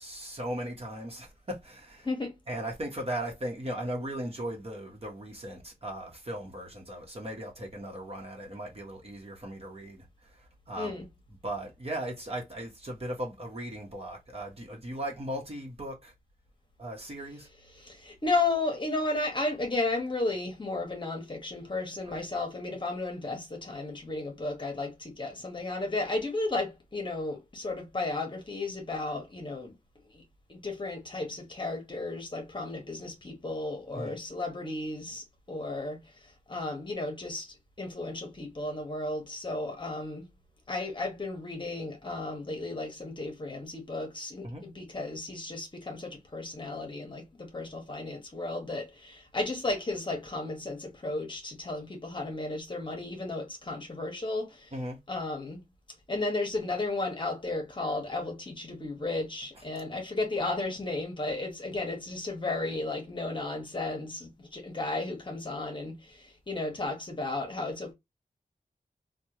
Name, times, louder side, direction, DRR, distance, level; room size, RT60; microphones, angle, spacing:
voice 1, 0.0-2.1 2.5-10.9 11.4-16.1 16.8-17.5 22.1-22.2 33.9-34.2 44.4-44.6 54.7-55.0, right 1 dB, 45° right, 1.1 m, -37 dB
voice 2, 2.0-2.4 10.8-11.0 17.8-29.7 30.1-30.2 30.5-40.3 40.7-54.7 55.1-55.6 56.1-67.9, left 2 dB, 35° left, 0.9 m, -34 dB
3.4 x 2.3 x 2.9 m
wide cardioid pair, 85°, 15 cm